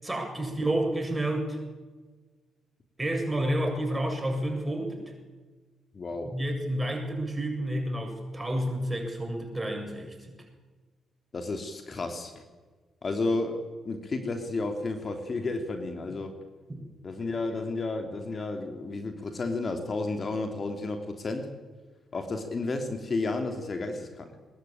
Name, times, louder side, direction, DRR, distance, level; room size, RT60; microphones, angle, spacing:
voice 1, 0.0-1.6 3.0-5.0 6.3-10.4 16.7-16.8, right 1 dB, 15° right, 3 dB, 7.6 m, -30 dB
voice 2, 5.9-6.3 11.3-12.4 13.0-16.3 17.0-21.5 22.1-24.4, left 3 dB, 40° left, 5 dB, 3.0 m, -32 dB
21.0 x 20.5 x 8.9 m, 1.4 s
hypercardioid pair, 40°, 0 cm